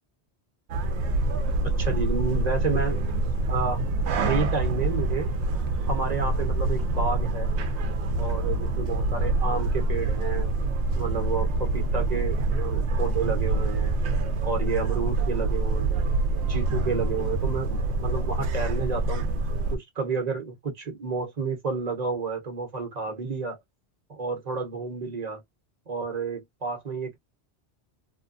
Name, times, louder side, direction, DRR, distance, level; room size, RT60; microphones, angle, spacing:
sound 1, 0.7-19.8, right 2 dB, 85° right, 0.9 m, -26 dB
voice 1, 1.8-3.0 3.5-3.8 4.2-5.3 5.9-7.5 8.2-10.5 10.9-14.0 14.4-16.1 16.5-19.2 19.7-23.6 24.1-25.4 25.9-27.2, right 5 dB, 40° right, 1.1 m, -30 dB
2.9 x 2.2 x 2.4 m
omnidirectional pair, 1.1 m